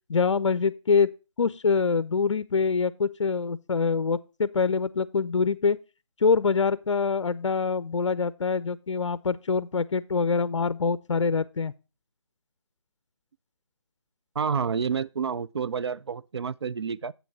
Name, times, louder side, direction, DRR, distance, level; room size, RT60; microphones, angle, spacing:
voice 1, 0.1-1.1 1.4-5.8 6.2-11.7, left 5 dB, 75° left, 0.5 m, -25 dB
voice 2, 14.4-17.1, right 6 dB, 60° right, 0.4 m, -29 dB
8.2 x 6.2 x 4.5 m
figure-of-eight pair, 165°, 16 cm